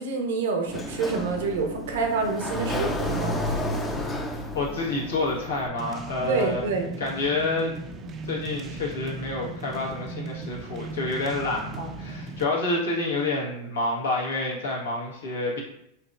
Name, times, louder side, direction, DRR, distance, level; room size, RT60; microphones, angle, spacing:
voice 1, 0.0-3.4 6.3-6.9, right 4 dB, 75° right, 3 dB, 0.8 m, -27 dB
Sliding door, 0.7-5.7, left 1 dB, 15° left, 0.5 m, -31 dB
voice 2, 4.5-6.6 7.0-7.7 8.2-15.6, left 2 dB, 85° left, -3 dB, 1.3 m, -28 dB
sound 1, 5.8-12.5, right 3 dB, 35° right, 0.5 m, -37 dB
4.6 x 2.9 x 2.4 m, 0.79 s
hypercardioid pair, 100°, 0 cm